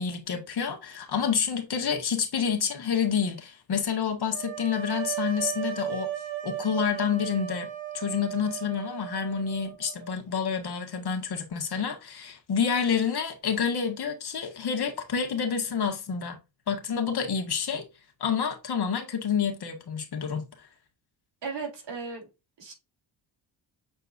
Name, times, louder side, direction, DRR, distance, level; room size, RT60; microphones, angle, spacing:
voice 1, 0.0-6.1 6.4-7.7 7.9-16.4 16.7-17.9 18.2-20.5, left 7 dB, 55° left, 1.9 m, -28 dB
sound 1, 4.3-10.2, right 12 dB, 90° right, 1.4 m, -36 dB
voice 2, 21.4-22.3 22.6-22.7, right 4 dB, 70° right, 3.5 m, -36 dB
7.8 x 4.5 x 2.7 m
cardioid pair, 95°, 45 cm